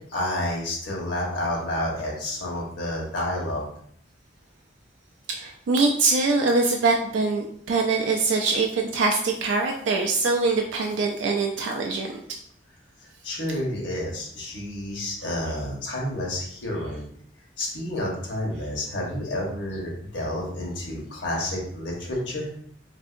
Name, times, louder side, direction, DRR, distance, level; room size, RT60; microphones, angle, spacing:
voice 1, 0.1-3.7 13.2-17.0 17.6-22.5, left 1 dB, 80° left, -2 dB, 1.1 m, -30 dB
voice 2, 5.3-12.2, right 3 dB, 75° right, 2 dB, 0.3 m, -23 dB
3.5 x 2.6 x 2.4 m, 0.63 s
head